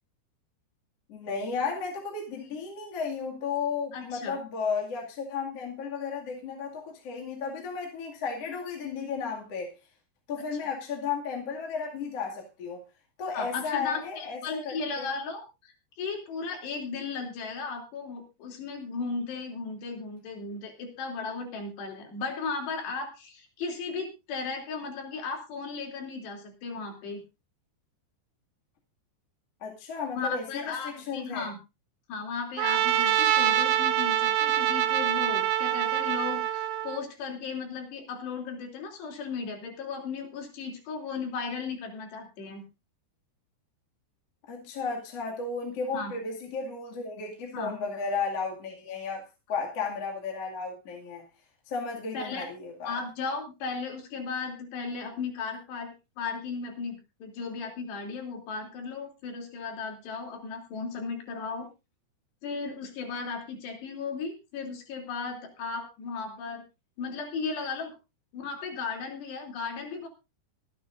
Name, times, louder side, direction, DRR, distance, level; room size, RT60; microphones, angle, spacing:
voice 1, 1.1-9.7 10.3-12.8 13.2-15.1 29.6-31.5 44.5-51.3 51.7-53.0, left 5 dB, 40° left, 2.8 m, -34 dB
voice 2, 3.9-4.4 13.3-27.2 30.2-31.6 32.1-42.6 45.9-46.1 47.5-47.7 52.1-52.5 52.9-61.7 62.4-66.6 67.0-67.9 68.3-70.1, left 4 dB, 75° left, 5.2 m, -36 dB
Trumpet, 32.6-37.0, right 11 dB, 75° right, 2.7 m, -25 dB
24.5 x 9.6 x 2.6 m
omnidirectional pair, 4.9 m